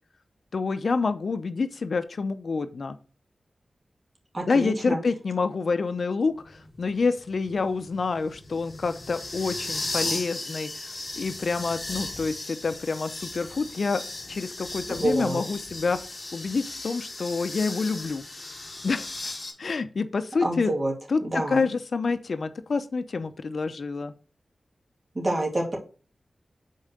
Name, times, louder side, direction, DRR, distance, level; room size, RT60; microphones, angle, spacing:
voice 1, 0.5-3.0 4.4-14.0 14.3-16.0 16.3-18.2 18.8-19.1 19.6-20.7 21.1-24.1, left 4 dB, 65° left, 10 dB, 0.6 m, -27 dB
voice 2, 4.3-5.0 14.9-15.4 20.4-20.9 21.2-21.6 25.1-25.8, right 1 dB, 35° right, 0 dB, 2.6 m, -27 dB
sound 1, 6.4-19.5, left 2 dB, 30° left, 2.2 m, -37 dB
5.5 x 4.5 x 6.4 m, 0.36 s
wide cardioid pair, 110°, 0 cm